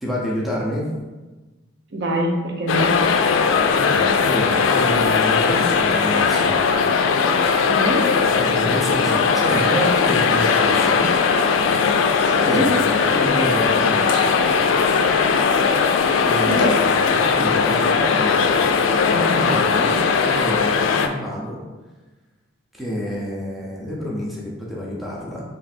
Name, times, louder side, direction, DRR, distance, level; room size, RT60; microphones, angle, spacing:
voice 1, 0.0-0.9 3.7-6.6 8.3-11.0 12.4-14.2 16.2-18.8 19.1-21.6 22.7-25.4, equal, ahead, -5 dB, 0.6 m, -28 dB
voice 2, 1.9-2.9 7.7-8.1 12.2-12.7 16.4-16.7, equal, 60° right, 0 dB, 0.6 m, -24 dB
sound 1, 2.7-21.1, left 5 dB, 80° left, 0.3 m, -18 dB
sound 2, 14.1-14.6 14.9-15.4 16.5-16.9 17.5-17.9 18.3-18.6, left 2 dB, 50° left, 0.8 m, -29 dB
3.2 x 2.5 x 4.2 m, 1.2 s
head